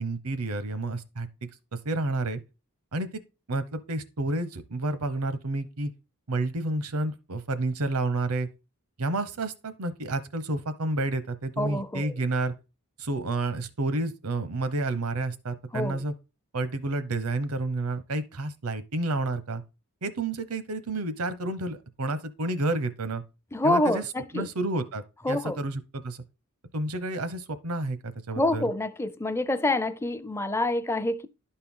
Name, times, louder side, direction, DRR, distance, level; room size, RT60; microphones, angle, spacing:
voice 1, 0.0-1.5 1.8-2.4 2.9-3.1 3.5-5.9 6.3-8.5 9.0-12.5 13.0-16.1 16.5-19.6 20.0-23.2 23.6-24.0 24.3-26.2 26.7-28.7, right 2 dB, 90° right, 0.8 m, -30 dB
voice 2, 11.6-12.1 15.7-16.0 23.5-24.5 25.2-25.6 28.4-31.3, left 1 dB, 10° left, 0.4 m, -27 dB
11.5 x 4.4 x 3.7 m
head